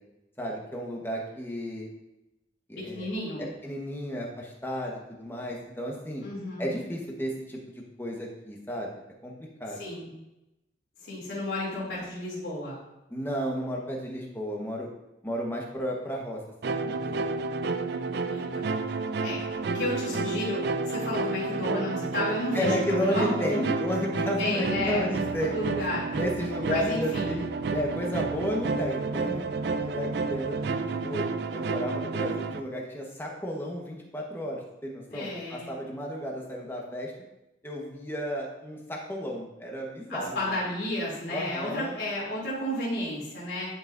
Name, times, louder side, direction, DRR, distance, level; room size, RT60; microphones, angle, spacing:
voice 1, 0.4-1.9 2.7-3.1 3.4-6.2 6.6-8.9 9.2-9.3 9.6-9.8 13.1-14.9 15.2-17.4 22.5-25.5 26.1-27.4 27.7-29.4 29.7-30.6 30.9-31.3 31.5-37.1 37.6-40.6 41.3-42.0, equal, 10° left, -1 dB, 1.1 m, -33 dB
voice 2, 2.8-3.4 6.2-6.8 9.8-10.1 11.0-12.8 18.3-18.5 19.2-23.7 24.4-25.1 25.4-26.1 26.7-27.4 35.1-35.8 40.1-43.7, left 1 dB, 75° left, -7 dB, 2.7 m, -32 dB
sound 1, 16.6-32.6, right 4 dB, 60° right, 0.4 m, -30 dB
10.5 x 5.6 x 2.6 m, 0.93 s
head